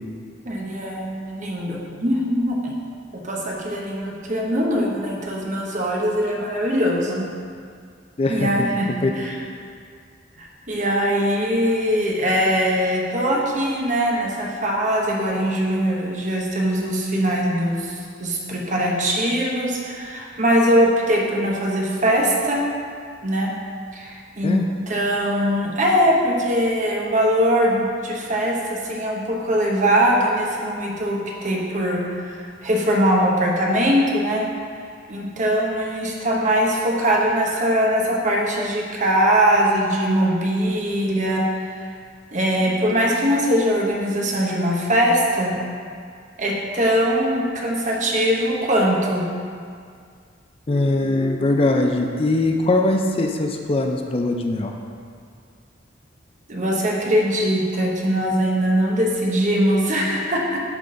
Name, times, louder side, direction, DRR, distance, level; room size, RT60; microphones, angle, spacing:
voice 1, 0.5-2.8 3.2-7.3 8.3-8.9 9.2-9.3 10.4-22.6 23.2-23.5 23.9-24.6 24.9-34.5 35.1-41.9 42.3-45.6 46.4-49.2 56.5-60.6, equal, 45° right, -2 dB, 1.0 m, -21 dB
voice 2, 8.2-8.5 9.0-9.1 24.4-24.6 50.7-54.7, left 2 dB, 30° left, 3 dB, 0.4 m, -21 dB
10.5 x 3.8 x 3.8 m, 2.2 s
head